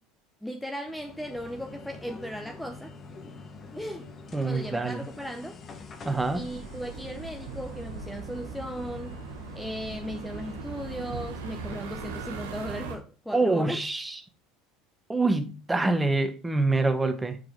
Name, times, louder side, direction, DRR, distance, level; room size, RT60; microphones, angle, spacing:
voice 1, 0.4-2.9 3.8-4.1 4.4-5.6 6.3-9.2 9.5-13.8, equal, 5° left, 0.7 m, -37 dB
sound 1, 0.9-13.0, left 4 dB, 35° left, 1.2 m, -46 dB
voice 2, 4.3-5.0 6.0-6.4 13.3-14.2 15.1-17.4, right 3 dB, 10° right, 1.0 m, -26 dB
sound 2, 6.2-13.0, right 5 dB, 80° right, 1.0 m, -39 dB
6.1 x 4.7 x 4.7 m
hypercardioid pair, 85°, 0 cm